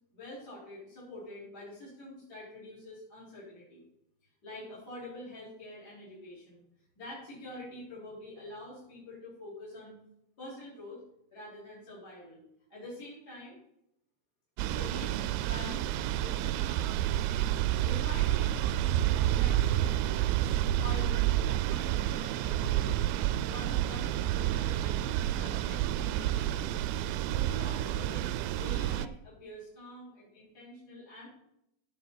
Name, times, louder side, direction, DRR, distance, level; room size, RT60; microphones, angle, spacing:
voice 1, 0.1-3.8 4.4-6.6 7.0-9.9 10.4-11.0 11.3-12.4 12.7-13.6 14.6-20.3 20.8-21.3 21.6-22.9 23.4-26.9 27.3-31.3, left 1 dB, 20° left, -9 dB, 4.3 m, -46 dB
sound 1, 14.6-29.1, right 13 dB, 85° right, 2.8 m, -29 dB
16.0 x 7.0 x 4.0 m, 0.80 s
omnidirectional pair, 5.1 m